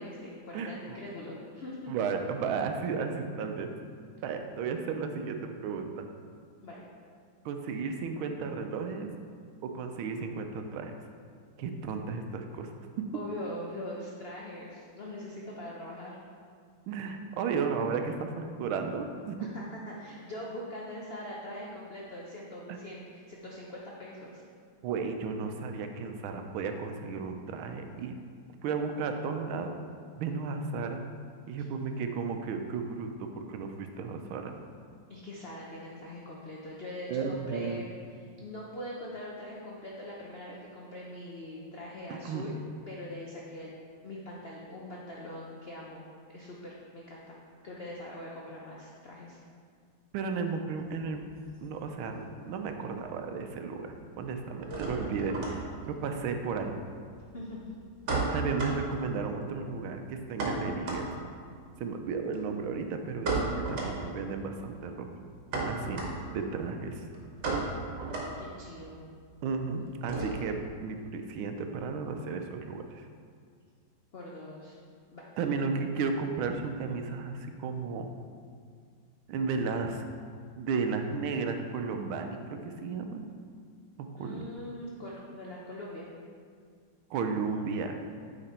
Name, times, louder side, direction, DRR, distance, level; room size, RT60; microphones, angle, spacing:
voice 1, 0.0-1.9 6.6-6.8 13.1-16.2 19.4-24.4 35.1-37.8 38.4-42.6 42.9-43.7 44.0-46.0 46.3-47.4 47.6-49.4 57.3-57.7 68.4-69.0 74.1-74.7 75.1-75.2 84.2-86.1, left 1 dB, 65° left, -4 dB, 0.6 m, -42 dB
voice 2, 0.5-1.0 1.9-3.7 4.2-6.1 7.4-9.1 9.6-10.9 11.6-12.7 16.9-19.5 22.7-22.8 24.8-28.1 28.6-29.7 30.2-31.0 31.5-34.5 37.1-37.8 42.1-42.5 50.1-51.2 51.6-56.7 58.3-61.1 61.8-65.1 65.7-66.0 66.3-67.1 69.4-72.8 75.4-78.1 79.3-80.0 80.6-83.3 84.0-84.4 87.1-88.0, right 5 dB, 90° right, 5 dB, 1.5 m, -34 dB
sound 1, 50.8-52.4 52.7-53.4 53.6-70.7, right 3 dB, 60° right, 1.8 m, -36 dB
8.9 x 4.4 x 4.3 m, 2.1 s
omnidirectional pair, 2.2 m